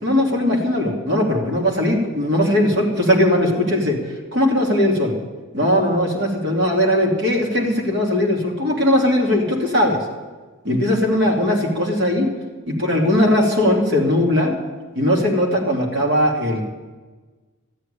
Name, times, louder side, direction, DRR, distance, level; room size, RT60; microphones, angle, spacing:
voice 1, 0.0-4.0 4.3-5.1 5.5-10.0 10.6-12.3 12.7-14.5 14.9-16.6, left 1 dB, 50° right, 0 dB, 2.8 m, -19 dB
13.5 x 7.9 x 10.0 m, 1.3 s
head